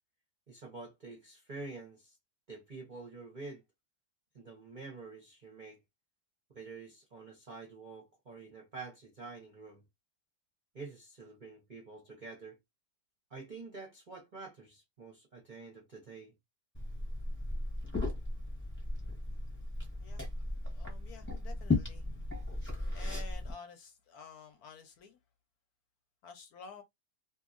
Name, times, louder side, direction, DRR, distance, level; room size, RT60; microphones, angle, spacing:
voice 1, 0.5-2.2 2.5-3.6 4.3-5.8 6.5-9.8 10.7-12.6 13.3-16.3, right 3 dB, 40° right, 0.7 m, -47 dB
Liquid, 16.7-23.5, left 2 dB, 10° left, 0.8 m, -36 dB
voice 2, 20.7-25.2 26.2-26.8, left 6 dB, 70° left, 1.0 m, -52 dB
2.8 x 2.6 x 2.5 m
omnidirectional pair, 1.9 m